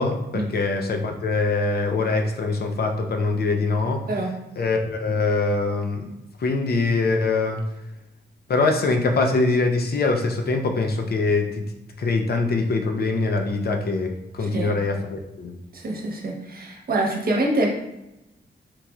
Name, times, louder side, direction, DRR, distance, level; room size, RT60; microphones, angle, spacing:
voice 1, 0.0-4.0 4.6-6.1 6.4-7.6 8.5-11.6 12.0-15.5, left 3 dB, 55° left, 4 dB, 0.6 m, -23 dB
voice 2, 14.4-14.7 15.7-17.8, right 1 dB, 50° right, -1 dB, 1.0 m, -25 dB
4.5 x 4.1 x 2.4 m, 0.92 s
wide cardioid pair, 135°, 19 cm